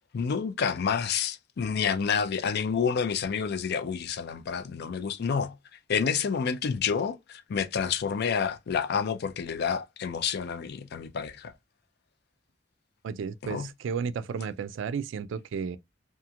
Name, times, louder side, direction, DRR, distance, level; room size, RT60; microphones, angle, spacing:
voice 1, 0.1-5.6 5.9-11.5 13.4-13.7, left 6 dB, 55° left, 0.4 m, -29 dB
voice 2, 13.0-15.8, right 6 dB, 70° right, 0.3 m, -33 dB
2.9 x 2.4 x 2.3 m
head